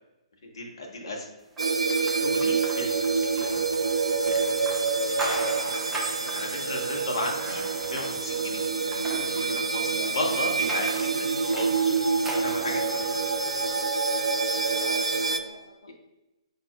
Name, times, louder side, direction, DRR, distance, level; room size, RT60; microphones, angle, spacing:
voice 1, 0.5-1.3 2.0-3.6 4.2-4.7 5.0-5.2 6.2-8.6 9.2-11.7 12.4-12.8, left 1 dB, 50° left, 0 dB, 1.0 m, -35 dB
sound 1, 1.6-13.8, right 1 dB, 5° right, 0.7 m, -39 dB
sound 2, 1.6-15.4, right 4 dB, 70° right, 0.4 m, -27 dB
voice 2, 4.8-5.7 14.5-15.9, equal, 80° left, -1 dB, 0.6 m, -45 dB
5.5 x 3.4 x 2.2 m, 0.96 s
figure-of-eight pair, 130°, 3 cm